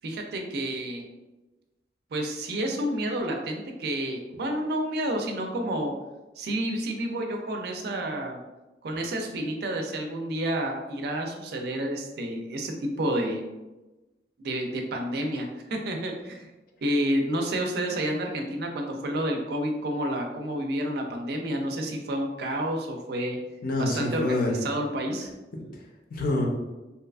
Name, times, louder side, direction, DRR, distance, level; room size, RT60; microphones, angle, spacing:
voice 1, 0.0-1.0 2.1-5.9 6.4-8.4 8.8-13.4 14.4-16.4 16.8-23.4 23.8-25.3, right 1 dB, 65° right, 3 dB, 0.4 m, -30 dB
voice 2, 23.6-24.6 25.5-26.5, left 2 dB, 55° left, 0 dB, 0.5 m, -28 dB
2.7 x 2.3 x 2.3 m, 1.1 s
head